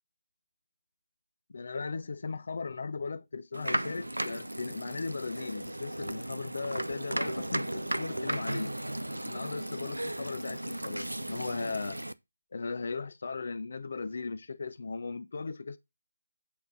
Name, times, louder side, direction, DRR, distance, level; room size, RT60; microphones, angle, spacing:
voice 1, 1.5-8.7 9.1-12.0 12.5-15.8, left 4 dB, 50° left, 0.6 m, -37 dB
sound 1, 3.5-12.1, right 1 dB, 85° right, 0.7 m, -35 dB
8.5 x 4.7 x 5.6 m
figure-of-eight pair, 155°, 0 cm